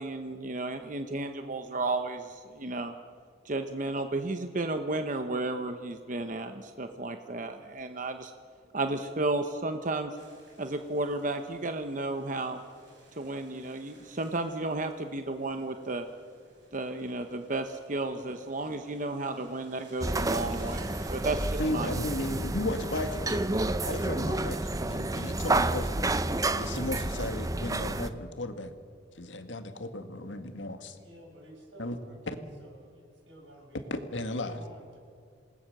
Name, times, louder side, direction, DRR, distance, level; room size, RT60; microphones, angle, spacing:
voice 1, 0.0-2.9 3.4-8.3 8.7-10.2 10.6-12.6 13.2-16.1 16.7-21.9, right 2 dB, 45° right, 7 dB, 1.0 m, -33 dB
sound 1, 10.2-25.8, right 2 dB, 70° right, 6.4 m, -58 dB
sound 2, 20.0-28.1, right 2 dB, 20° right, 0.7 m, -30 dB
voice 2, 21.6-23.4 23.8-26.1 26.6-28.7 29.2-31.0 31.8-32.0 33.9-34.6, left 1 dB, 85° left, 7 dB, 1.9 m, -35 dB
voice 3, 31.0-32.2 32.6-33.9 34.5-35.0, right 1 dB, 85° right, 1 dB, 6.3 m, -52 dB
27.0 x 20.0 x 6.7 m, 2.3 s
head